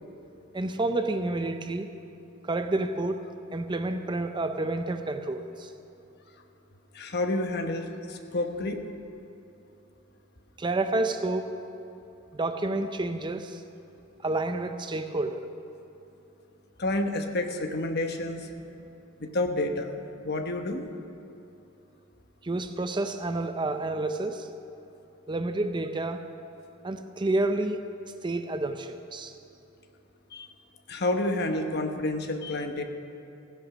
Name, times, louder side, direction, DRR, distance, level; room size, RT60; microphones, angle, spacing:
voice 1, 0.5-1.9 2.4-3.3 3.5-5.7 10.6-11.5 12.3-13.6 14.2-15.5 22.4-24.5 25.3-26.2 26.8-27.8 28.2-29.3, right 2 dB, 20° right, 8 dB, 0.5 m, -29 dB
voice 2, 6.9-8.8 16.8-18.5 19.2-19.9 20.2-20.9 30.3-30.5 30.9-32.8, left 2 dB, 50° left, 5 dB, 1.1 m, -29 dB
16.0 x 10.5 x 6.1 m, 2.9 s
head